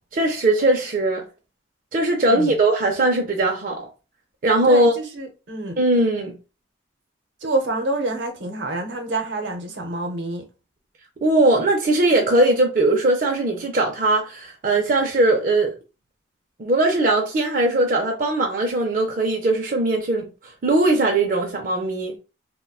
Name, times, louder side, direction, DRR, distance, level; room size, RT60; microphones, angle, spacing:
voice 1, 0.1-1.2 1.9-3.9 4.4-4.9 5.8-6.3 11.2-15.7 16.6-20.3 20.6-22.1, right 2 dB, 45° right, 0.4 m, -20 dB
voice 2, 4.6-5.8 7.4-10.4, right 2 dB, 75° right, 0.7 m, -27 dB
3.7 x 2.2 x 2.3 m
head